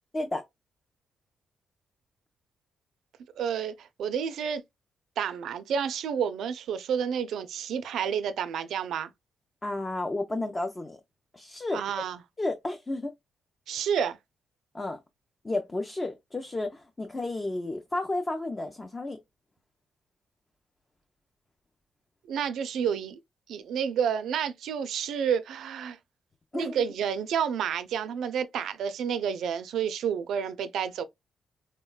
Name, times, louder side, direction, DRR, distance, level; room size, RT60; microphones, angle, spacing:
voice 1, 0.1-0.5 9.6-11.0 11.3-11.8 12.4-13.1 14.7-15.0 15.4-19.2 26.5-26.8, left 2 dB, 25° left, 0.4 m, -32 dB
voice 2, 3.4-4.6 5.2-9.1 11.7-12.2 13.7-14.2 22.3-23.2 23.5-26.0 26.5-31.0, right 8 dB, 80° right, 0.4 m, -30 dB
3.8 x 2.1 x 2.2 m
cardioid pair, 95°, 0 cm